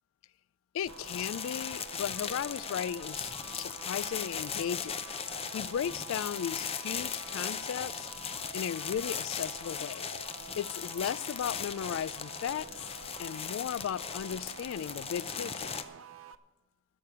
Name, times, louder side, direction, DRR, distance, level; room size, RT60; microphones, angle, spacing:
voice 1, 0.7-4.9 5.5-8.1 8.5-10.1 10.6-12.7 13.2-15.7, left 8 dB, 85° left, 0.3 m, -36 dB
sound 1, 0.8-15.8, left 7 dB, 30° left, 0.6 m, -38 dB
sound 2, 0.9-16.3, right 8 dB, 75° right, 0.5 m, -49 dB
12.5 x 6.7 x 8.4 m
head